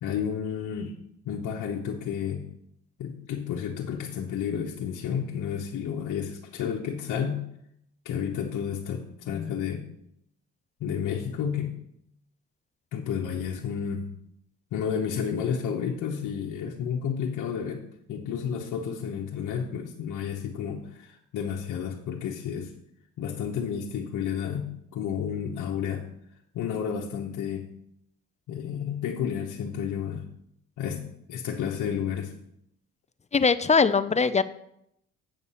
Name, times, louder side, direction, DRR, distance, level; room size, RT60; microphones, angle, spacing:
voice 1, 0.0-1.0 1.2-2.5 3.0-7.5 8.0-9.9 10.8-11.8 12.9-14.1 14.7-17.8 18.1-22.7 23.2-26.1 26.5-27.7 28.5-30.3 30.8-32.3, left 7 dB, 80° left, -1 dB, 1.1 m, -31 dB
voice 2, 33.3-34.4, left 5 dB, 25° left, 13 dB, 0.5 m, -21 dB
8.4 x 6.6 x 5.6 m, 0.75 s
cardioid pair, 90°, 30 cm